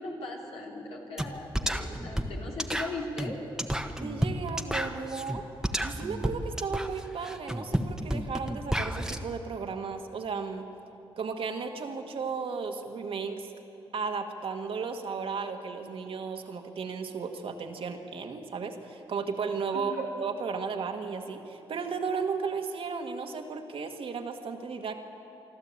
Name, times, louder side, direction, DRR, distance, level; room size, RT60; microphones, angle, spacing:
voice 1, 0.0-3.4 19.7-20.1, left 2 dB, 85° left, -1 dB, 3.4 m, -38 dB
sound 1, 1.2-1.3 1.5-9.2, right 1 dB, 5° right, 1.3 m, -31 dB
voice 2, 4.0-5.4 5.8-10.7 11.2-13.5 13.9-24.9, right 5 dB, 70° right, 5 dB, 1.8 m, -34 dB
25.5 x 12.0 x 8.6 m, 2.9 s
cardioid pair, 60°, 10 cm